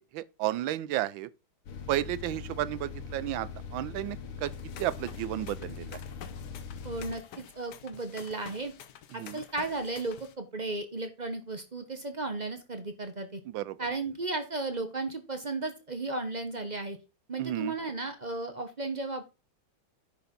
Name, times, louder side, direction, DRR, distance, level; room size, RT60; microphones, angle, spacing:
voice 1, 0.1-1.3 1.9-4.5 4.8-6.0 9.1-9.4 13.5-13.8 17.4-17.7, right 14 dB, 75° right, 1.3 m, -32 dB
sound 1, 1.7-7.1, left 5 dB, 75° left, 2.2 m, -41 dB
sound 2, 4.4-10.3, left 9 dB, 60° left, 1.3 m, -49 dB
voice 2, 6.8-8.7 9.1-13.4 13.8-17.0 17.3-19.2, right 2 dB, 35° right, 0.7 m, -35 dB
10.0 x 4.6 x 5.3 m
omnidirectional pair, 2.4 m